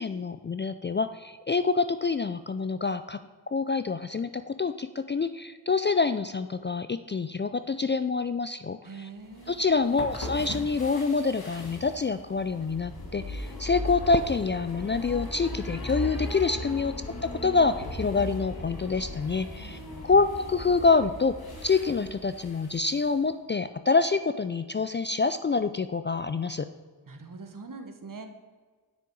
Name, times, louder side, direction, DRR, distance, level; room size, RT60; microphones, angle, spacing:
voice 1, 0.0-3.2 3.5-8.8 9.5-16.9 17.2-21.4 21.6-26.7, left 4 dB, 30° left, 11 dB, 0.4 m, -26 dB
voice 2, 8.8-9.5 19.6-20.0 27.1-28.3, right 4 dB, 50° right, 6 dB, 1.4 m, -43 dB
sound 1, 9.3-23.1, left 1 dB, 60° left, 2.0 m, -38 dB
9.7 x 6.2 x 4.7 m, 1.5 s
cardioid pair, 40°, 42 cm